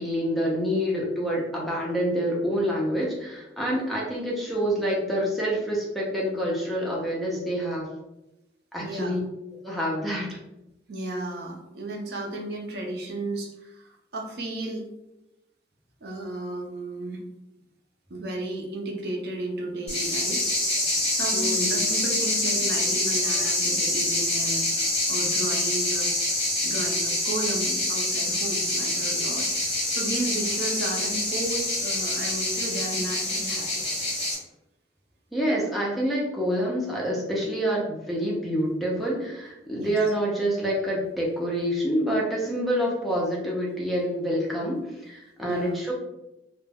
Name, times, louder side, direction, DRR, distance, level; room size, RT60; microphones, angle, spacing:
voice 1, 0.0-7.9 8.7-9.2 9.6-10.4 21.3-21.9 35.3-45.9, equal, ahead, -5 dB, 0.4 m, -27 dB
voice 2, 8.8-9.2 10.9-14.9 16.0-17.2 18.1-20.4 21.1-26.1 26.6-34.1 39.7-39.9 45.4-45.8, right 2 dB, 55° right, 0 dB, 0.5 m, -34 dB
sound 1, 19.9-34.4, left 1 dB, 35° left, 1.0 m, -26 dB
2.2 x 2.0 x 3.3 m, 0.92 s
head